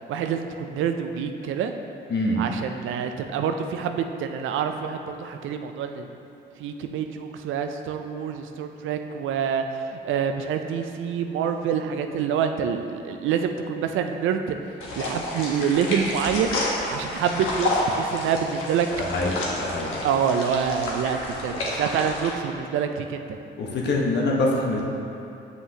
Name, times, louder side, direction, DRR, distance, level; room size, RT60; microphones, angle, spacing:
voice 1, 0.1-1.7 2.4-6.1 6.6-14.6 15.0-16.5 16.9-18.9 20.0-23.4, right 7 dB, 80° right, 6 dB, 0.5 m, -26 dB
sound 1, 14.8-22.3, left 1 dB, 90° left, 1.1 m, -30 dB
voice 2, 19.0-19.3 19.6-19.9 23.6-24.8, left 2 dB, 60° left, -1 dB, 1.1 m, -24 dB
7.6 x 5.6 x 2.8 m, 2.8 s
cardioid pair, 90°, 20 cm